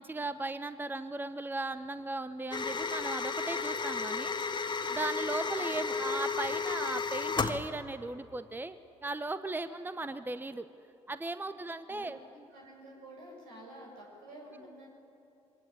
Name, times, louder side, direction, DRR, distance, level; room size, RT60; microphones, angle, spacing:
voice 1, 0.0-4.3 4.9-10.7 11.1-12.2, right 2 dB, 15° right, 12 dB, 1.0 m, -37 dB
sound 1, 2.5-7.6, left 4 dB, 30° left, 1.5 m, -33 dB
voice 2, 11.4-14.9, right 1 dB, 75° right, -1 dB, 7.0 m, -51 dB
24.0 x 18.0 x 9.4 m, 2.9 s
hypercardioid pair, 50°, 15 cm